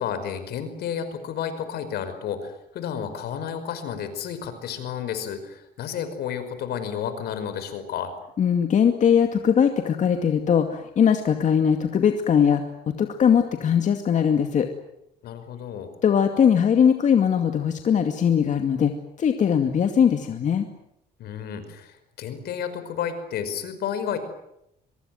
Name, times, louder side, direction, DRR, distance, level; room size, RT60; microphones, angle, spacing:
voice 1, 0.0-8.1 15.2-15.9 21.2-24.2, left 8 dB, 70° left, 10 dB, 5.4 m, -31 dB
voice 2, 8.4-12.6 13.0-14.7 16.0-18.9 19.2-20.7, left 7 dB, 45° left, 6 dB, 2.4 m, -20 dB
24.0 x 22.5 x 9.4 m, 0.80 s
cardioid pair, 110°, 17 cm